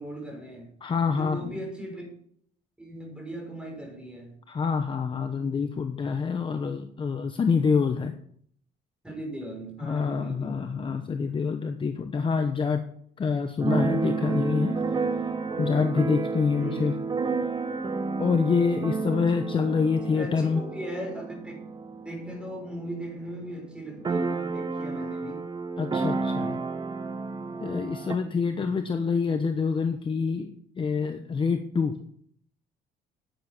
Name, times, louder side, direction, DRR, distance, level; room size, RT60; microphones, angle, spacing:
voice 1, 0.0-0.7 1.1-2.1 2.8-4.3 9.0-10.6 16.6-17.0 20.1-21.6 22.0-25.5 28.4-28.7, right 1 dB, 5° right, 0 dB, 6.1 m, -38 dB
voice 2, 0.8-1.6 4.5-8.1 9.8-12.8 13.2-14.8 15.6-16.9 18.2-20.6 25.8-26.6 27.6-31.9, left 5 dB, 30° left, 7 dB, 1.0 m, -26 dB
Keyboard (musical), 13.6-23.1 23.4-23.5 23.7-28.1, right 4 dB, 25° right, 1.2 m, -31 dB
10.5 x 9.4 x 6.1 m, 0.64 s
cardioid pair, 110°, 17 cm